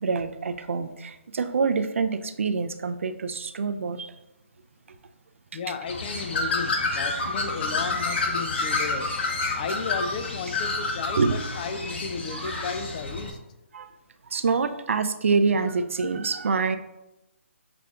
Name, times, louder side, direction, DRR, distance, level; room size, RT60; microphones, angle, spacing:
voice 1, 0.0-4.1 11.2-11.4 12.3-12.7 13.7-13.9 14.3-16.8, right 4 dB, 70° right, 0.4 m, -26 dB
voice 2, 5.5-9.1 9.5-13.4, left 5 dB, 35° left, 0.4 m, -34 dB
Bird, 5.9-13.3, left 3 dB, 50° left, 0.8 m, -29 dB
6.8 x 2.5 x 2.3 m
figure-of-eight pair, 145°, 7 cm